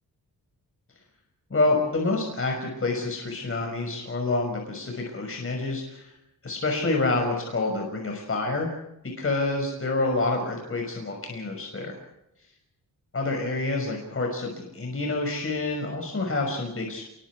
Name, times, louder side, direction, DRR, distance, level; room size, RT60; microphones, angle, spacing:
voice 1, 1.5-6.1 6.4-8.7 9.2-11.9 13.1-17.0, left 2 dB, 35° left, 1 dB, 5.9 m, -27 dB
29.5 x 23.0 x 4.8 m, 0.85 s
wide cardioid pair, 135°, 36 cm